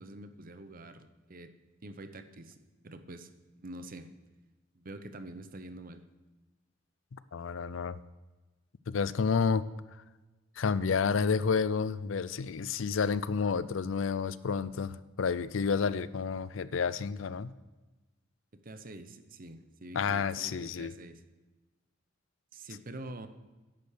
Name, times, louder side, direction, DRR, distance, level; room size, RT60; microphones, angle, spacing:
voice 1, 0.0-1.5 1.8-2.6 2.8-3.3 3.6-4.1 4.7-6.0 18.5-21.2 22.5-23.3, right 2 dB, 45° right, 0.9 m, -46 dB
voice 2, 7.1-8.0 8.9-9.7 10.6-17.5 19.9-20.9, left 5 dB, 75° left, 0.5 m, -30 dB
10.5 x 8.4 x 6.6 m
head